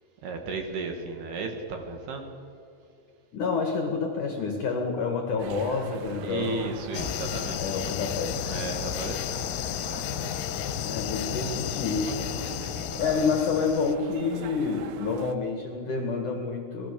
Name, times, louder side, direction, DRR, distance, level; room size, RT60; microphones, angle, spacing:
voice 1, 0.2-2.3 6.2-7.9 8.5-9.6, right 4 dB, 60° right, 4 dB, 3.5 m, -34 dB
voice 2, 3.3-6.7 7.6-8.6 8.8-9.1 10.8-12.1 12.9-16.9, left 4 dB, 55° left, 3 dB, 2.5 m, -28 dB
sound 1, 5.4-15.4, right 8 dB, 80° right, 3.6 m, -42 dB
sound 2, 6.9-14.0, left 13 dB, 85° left, 3.2 m, -33 dB
27.0 x 20.0 x 6.9 m, 2.4 s
omnidirectional pair, 5.7 m